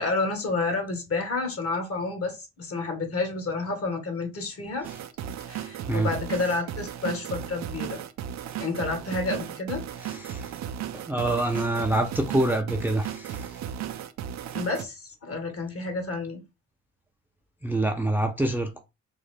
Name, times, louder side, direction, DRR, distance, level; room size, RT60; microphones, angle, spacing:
voice 1, 0.0-4.9 5.5-8.0 8.6-9.8 14.5-16.4, left 3 dB, 50° left, 1.4 m, -30 dB
sound 1, 4.8-14.9, right 9 dB, 65° right, 0.5 m, -35 dB
voice 2, 10.0-10.5 11.1-13.5 17.6-18.8, right 1 dB, 5° right, 0.5 m, -26 dB
3.8 x 2.4 x 3.3 m
cardioid pair, 90°, 30 cm